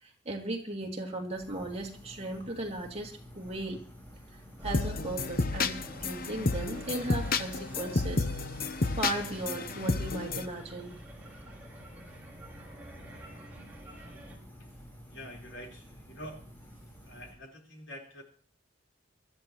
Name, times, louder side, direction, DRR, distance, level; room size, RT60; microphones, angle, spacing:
voice 1, 0.0-3.8 4.6-8.6 8.9-11.0, right 2 dB, 35° right, 1 dB, 2.6 m, -37 dB
sound 1, 1.3-17.3, equal, 10° left, 3.9 m, -51 dB
sound 2, 4.6-10.4, left 3 dB, 50° left, 0.8 m, -31 dB
sound 3, 4.6-14.4, right 1 dB, 10° right, 4.6 m, -49 dB
voice 2, 15.1-16.4 17.0-18.2, equal, 75° left, 0 dB, 4.1 m, -46 dB
23.0 x 13.5 x 3.0 m, 0.42 s
head